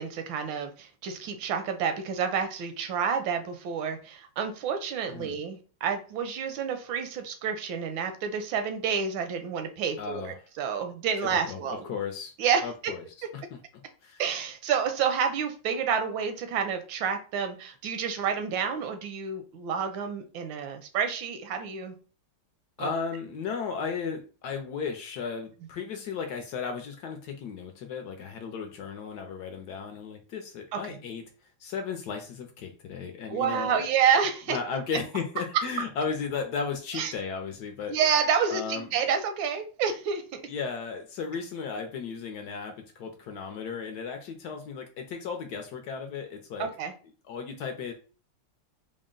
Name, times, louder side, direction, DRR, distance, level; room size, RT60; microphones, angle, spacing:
voice 1, 0.0-11.9 12.4-12.9 14.2-21.9 22.8-22.9 30.7-31.0 33.3-34.6 36.9-37.1 37.9-40.4 46.6-46.9, right 7 dB, 80° right, 8 dB, 1.4 m, -29 dB
voice 2, 10.0-10.4 11.5-12.3 12.6-13.0 13.3-13.6 14.0-14.2 22.8-31.2 31.6-33.9 34.5-38.0 38.5-38.9 40.5-46.7 47.3-47.9, left 5 dB, 70° left, 4 dB, 1.0 m, -35 dB
3.9 x 2.1 x 3.7 m, 0.38 s
omnidirectional pair, 2.1 m